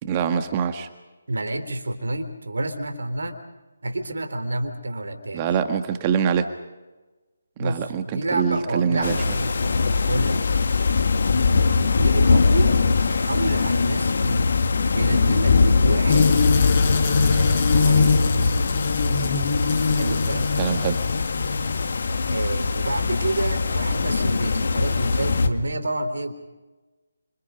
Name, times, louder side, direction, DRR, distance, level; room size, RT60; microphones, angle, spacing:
voice 1, 0.0-0.9 5.3-6.5 7.6-9.2 20.6-21.0, right 7 dB, 25° right, 8 dB, 1.7 m, -24 dB
voice 2, 1.3-3.4 3.8-5.4 7.6-9.6 10.0-10.9 11.9-14.5 14.9-16.4 17.3-18.2 19.9-20.5 22.3-26.3, right 1 dB, 70° right, 7 dB, 4.0 m, -29 dB
sound 1, 9.0-25.5, left 4 dB, 60° left, 1.9 m, -21 dB
sound 2, 16.1-22.1, left 4 dB, 40° left, 5.9 m, -24 dB
30.0 x 27.0 x 5.3 m, 1.2 s
figure-of-eight pair, 150°, 0 cm